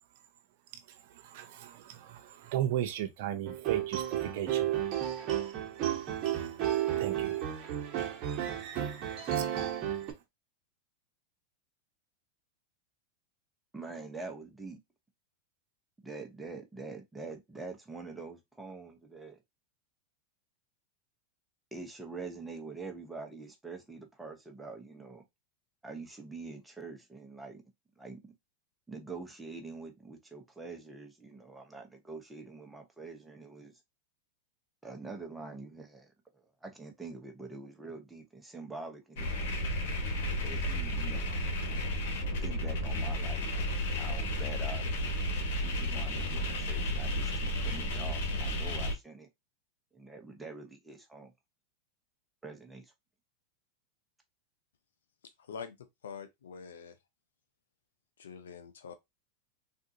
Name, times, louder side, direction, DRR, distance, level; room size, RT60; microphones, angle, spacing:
voice 1, 1.2-4.7 7.0-7.4 8.8-9.1 9.3-9.4, right 11 dB, 65° right, 0.6 m, -36 dB
sound 1, 3.5-10.1, right 11 dB, 45° right, 1.0 m, -32 dB
voice 2, 13.7-14.8 16.0-19.4 21.7-25.2 25.8-27.6 28.0-28.2 28.9-33.7 34.8-36.1 36.6-39.5 40.4-41.3 42.4-44.9 45.6-49.3 49.9-51.3 52.4-52.8, right 3 dB, 10° right, 0.8 m, -45 dB
sound 2, 39.2-48.9, equal, 70° left, 1.2 m, -32 dB
voice 3, 56.0-56.9 58.2-58.9, left 6 dB, 85° left, 0.5 m, -44 dB
3.6 x 2.6 x 2.6 m
hypercardioid pair, 105°, 0 cm